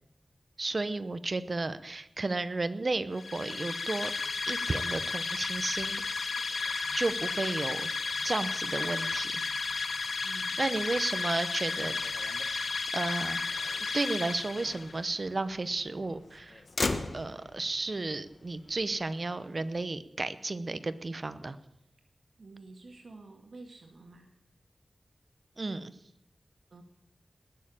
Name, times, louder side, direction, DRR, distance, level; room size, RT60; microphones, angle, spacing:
voice 1, 0.6-4.1 4.5-6.0 6.9-7.9 8.2-9.5 10.6-11.9 12.5-13.5 13.9-16.6 17.1-21.6 25.6-25.8, right 3 dB, 45° right, 13 dB, 0.9 m, -33 dB
sound 1, 3.1-15.0, left 4 dB, 90° left, 1.0 m, -33 dB
Motor vehicle (road), 4.0-19.8, left 3 dB, 55° left, 1.2 m, -43 dB
voice 2, 10.2-10.6 22.4-24.3 25.6-25.8 26.7-26.8, right 3 dB, 75° right, 3 dB, 1.9 m, -49 dB
20.0 x 6.8 x 8.7 m, 0.81 s
wide cardioid pair, 95°, 0 cm